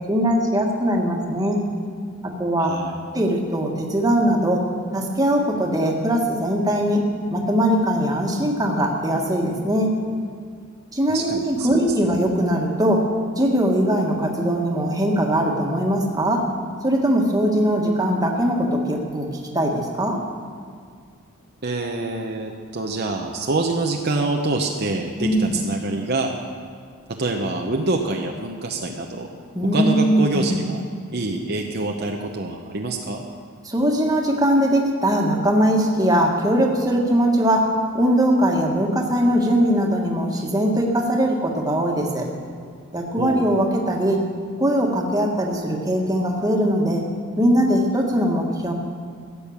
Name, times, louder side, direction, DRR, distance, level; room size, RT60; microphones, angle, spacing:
voice 1, 0.1-1.6 2.2-2.7 3.1-4.6 4.9-7.0 7.3-9.9 10.9-13.0 13.4-16.5 16.8-19.3 19.5-20.2 25.2-25.5 29.5-30.6 33.6-42.2 42.9-44.2 44.6-47.0 47.4-48.7, equal, 15° right, 0 dB, 1.6 m, -20 dB
voice 2, 2.6-3.0 11.1-11.8 21.6-26.4 27.1-29.3 29.7-30.8 31.1-33.2 43.2-43.5, right 2 dB, 50° right, 1 dB, 0.9 m, -26 dB
15.5 x 8.5 x 7.2 m, 2.1 s
head